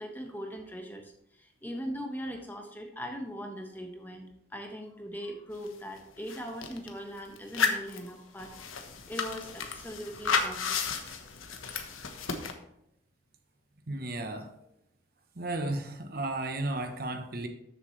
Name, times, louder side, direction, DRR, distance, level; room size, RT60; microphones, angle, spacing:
voice 1, 0.0-4.2 4.5-11.2, equal, 10° left, 3 dB, 1.3 m, -40 dB
sound 1, 5.7-5.8 6.0-6.9 7.4-12.5, left 5 dB, 85° left, 1.3 m, -32 dB
voice 2, 13.9-14.5 15.4-17.5, right 2 dB, 50° right, 6 dB, 1.0 m, -34 dB
13.5 x 7.3 x 3.3 m, 0.78 s
head